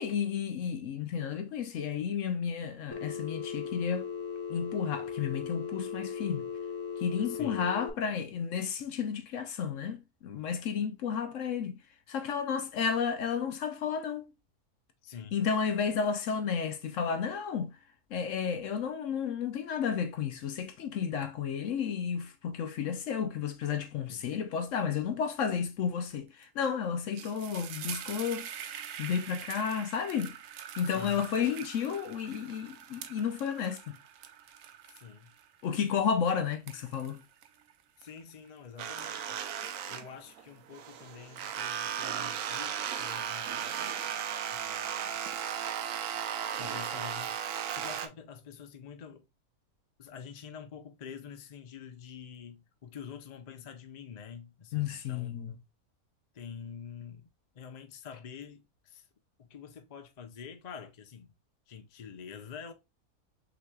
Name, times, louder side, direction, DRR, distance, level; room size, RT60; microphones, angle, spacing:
voice 1, 0.0-4.1 4.5-6.5 7.0-11.8 12.1-14.3 15.3-17.7 18.1-30.4 30.8-34.0 35.6-37.2 54.7-55.5, left 7 dB, 65° left, 0.9 m, -32 dB
Telephone, 2.9-7.9, left 6 dB, 20° left, 1.0 m, -38 dB
voice 2, 7.2-7.6 15.0-15.4 24.1-24.2 30.8-31.3 34.9-35.3 38.0-39.4 39.9-43.7 44.5-45.2 46.6-49.2 50.0-55.6 56.3-57.2 57.5-59.0 59.5-61.3 61.7-62.7, left 7 dB, 45° left, 0.5 m, -47 dB
sound 1, 26.4-26.6 26.9-38.5 38.8-40.8, right 9 dB, 90° right, 1.1 m, -46 dB
sound 2, 38.8-40.4 40.7-48.1, right 8 dB, 70° right, 1.0 m, -35 dB
5.9 x 3.0 x 2.2 m
omnidirectional pair, 1.5 m